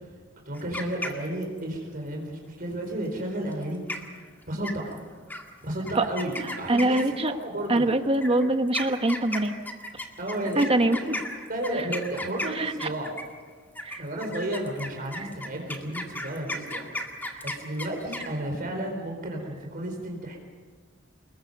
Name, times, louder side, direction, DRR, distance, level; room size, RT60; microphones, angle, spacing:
sound 1, 0.5-1.6 3.5-3.6 3.9-4.2 4.6-5.0 5.3-5.4 5.9-7.3 8.1-13.4 13.7-18.3, left 1 dB, 10° left, 2.0 m, -35 dB
voice 1, 0.5-3.8 4.5-5.0 5.6-7.0 7.3-7.9 10.2-11.2 11.5-13.1 14.0-16.9 17.2-20.4, right 1 dB, 45° right, 1 dB, 4.2 m, -32 dB
voice 2, 6.7-7.3 7.7-9.5 10.5-11.0 12.5-12.9 13.8-14.0 15.1-15.3 17.3-17.4, right 1 dB, 30° right, 7 dB, 1.3 m, -24 dB
27.0 x 21.5 x 5.4 m, 1.5 s
head